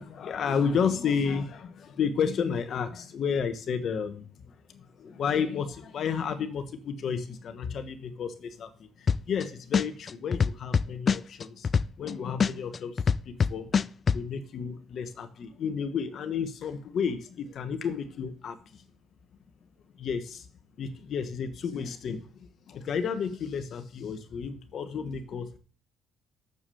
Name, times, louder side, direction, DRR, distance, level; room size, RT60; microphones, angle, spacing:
voice 1, 0.0-11.7 12.0-13.7 14.1-18.8 19.9-20.5 20.8-25.6, left 6 dB, 55° left, 10 dB, 1.3 m, -32 dB
sound 1, 9.1-9.4 9.7-12.1 12.4-14.2, left 6 dB, 40° left, 0.4 m, -23 dB
7.1 x 6.9 x 7.0 m, 0.39 s
cardioid pair, 90°, 0 cm